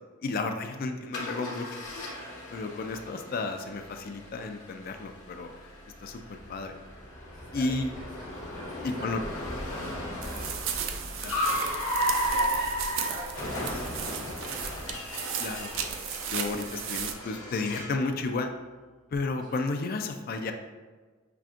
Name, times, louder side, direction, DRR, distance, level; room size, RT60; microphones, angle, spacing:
voice 1, 0.2-1.7 2.5-5.5 6.0-6.7 7.5-7.9 8.8-9.2 11.2-11.4 15.4-15.7 16.3-18.5 19.1-20.5, left 3 dB, 45° left, 6 dB, 0.3 m, -32 dB
Car, 1.1-18.0, equal, 80° left, 0.9 m, -35 dB
voice 2, 7.3-10.9 11.4-13.6 19.5-19.7, equal, 20° right, -9 dB, 1.4 m, -46 dB
sound 1, 10.2-17.1, right 7 dB, 70° right, 0.3 m, -35 dB
5.7 x 2.5 x 2.4 m, 1.4 s
head